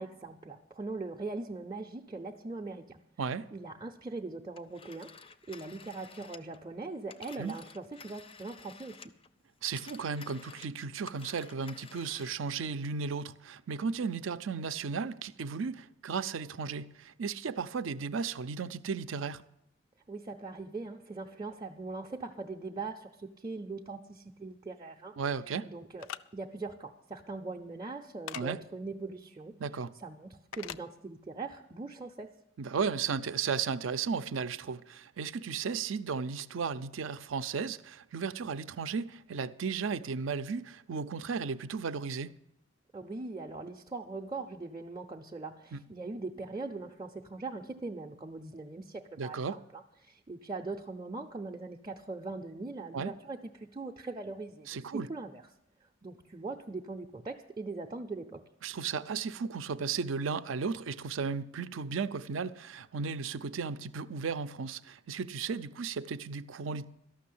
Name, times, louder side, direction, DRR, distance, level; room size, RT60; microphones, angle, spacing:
voice 1, 0.0-3.0 3.5-9.0 20.1-25.2 25.7-26.1 26.3-29.6 30.0-32.3 42.9-55.4 56.0-58.4, right 3 dB, 25° right, 0.5 m, -41 dB
voice 2, 3.2-3.5 7.4-7.5 9.6-19.4 25.2-25.7 28.3-28.6 29.6-29.9 32.6-42.3 45.7-45.8 49.2-49.6 52.9-53.1 54.7-55.1 58.6-66.9, right 5 dB, 75° right, 0.5 m, -35 dB
Telephone, 4.6-9.3 9.6-12.5, left 5 dB, 30° left, 0.4 m, -52 dB
sound 1, 26.0-26.2 28.3-28.4 30.5-30.8, left 10 dB, 85° left, 0.4 m, -40 dB
12.5 x 6.2 x 8.5 m
head